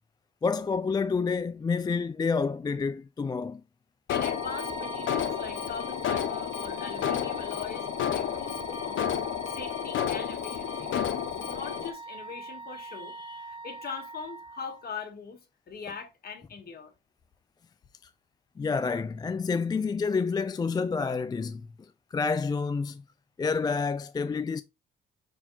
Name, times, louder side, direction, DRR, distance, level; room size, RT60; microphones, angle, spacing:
voice 1, 0.4-3.6 18.6-21.7 22.1-23.0 23.4-24.6, left 5 dB, 20° left, 0.3 m, -28 dB
Alarm, 4.1-11.9, left 9 dB, 75° left, 1.0 m, -31 dB
voice 2, 4.1-9.2 9.5-11.1 11.4-16.9, left 5 dB, 50° left, 2.1 m, -41 dB
Wind instrument woodwind instrument, 4.2-15.0, right 3 dB, 20° right, 1.7 m, -43 dB
5.4 x 4.6 x 4.3 m
cardioid pair, 90°, 20 cm